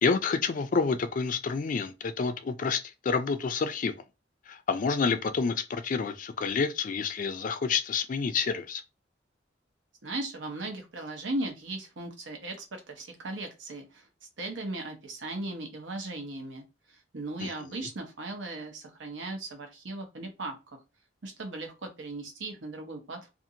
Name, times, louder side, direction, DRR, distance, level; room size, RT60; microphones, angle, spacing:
voice 1, 0.0-3.9 4.5-8.8 17.4-17.5, left 5 dB, 45° left, 0.4 m, -28 dB
voice 2, 10.0-14.1 14.4-20.6 21.2-23.3, right 2 dB, 80° right, 0.8 m, -37 dB
2.5 x 2.5 x 2.7 m
head